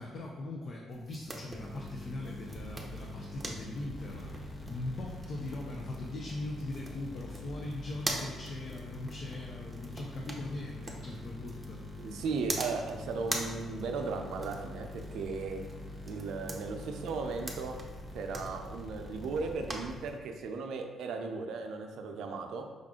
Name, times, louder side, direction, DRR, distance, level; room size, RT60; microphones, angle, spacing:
voice 1, 0.0-12.1, left 2 dB, 55° left, -1 dB, 0.5 m, -40 dB
sound 1, 0.9-20.2, right 2 dB, 25° right, 0.7 m, -44 dB
sound 2, 1.5-20.3, left 2 dB, 30° left, 0.9 m, -45 dB
voice 2, 12.0-15.6 16.1-17.8 18.1-22.6, right 4 dB, 80° right, 4 dB, 0.5 m, -36 dB
5.1 x 2.5 x 3.6 m, 1.4 s
cardioid pair, 90°, 0 cm